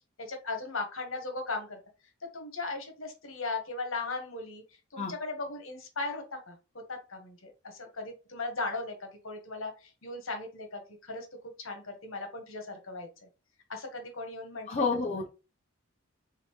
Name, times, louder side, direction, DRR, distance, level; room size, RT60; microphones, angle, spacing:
voice 1, 0.2-1.8 2.3-4.6 4.9-6.5 6.9-9.7 10.0-11.2 11.6-13.1 13.7-14.9, left 3 dB, 70° left, 4 dB, 1.4 m, -37 dB
voice 2, 14.7-15.3, left 4 dB, 35° left, -1 dB, 0.7 m, -29 dB
4.1 x 3.9 x 3.0 m, 0.31 s
head